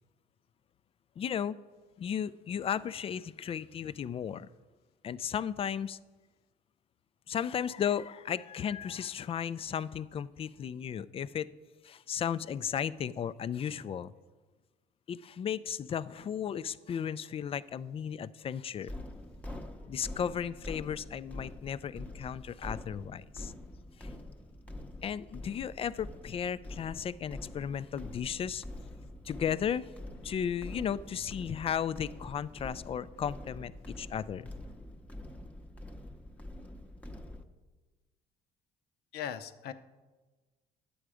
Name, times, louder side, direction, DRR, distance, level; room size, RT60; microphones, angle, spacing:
voice 1, 1.2-1.6 2.0-4.5 5.0-6.0 7.3-11.5 11.8-14.1 15.1-18.9 19.9-23.5 24.0-24.1 25.0-28.6 29.2-29.9 30.2-34.5, left 8 dB, 35° left, 17 dB, 0.3 m, -35 dB
sound 1, 18.9-37.4, left 1 dB, 10° left, 0.7 m, -45 dB
voice 2, 39.1-39.7, left 9 dB, 70° left, 11 dB, 0.7 m, -38 dB
10.5 x 7.8 x 4.9 m, 1.3 s
cardioid pair, 110°, 17 cm